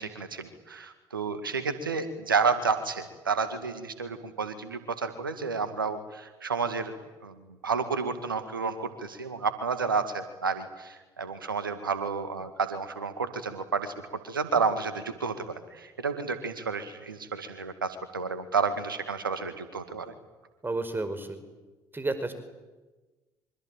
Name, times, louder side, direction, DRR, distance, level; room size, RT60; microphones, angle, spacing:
voice 1, 0.0-6.9 7.2-13.9 14.2-20.1, right 5 dB, 90° right, 10 dB, 2.1 m, -31 dB
voice 2, 20.6-21.4 21.9-22.3, right 2 dB, 20° right, 11 dB, 5.1 m, -31 dB
26.0 x 25.0 x 9.0 m, 1.2 s
figure-of-eight pair, 55°, 11 cm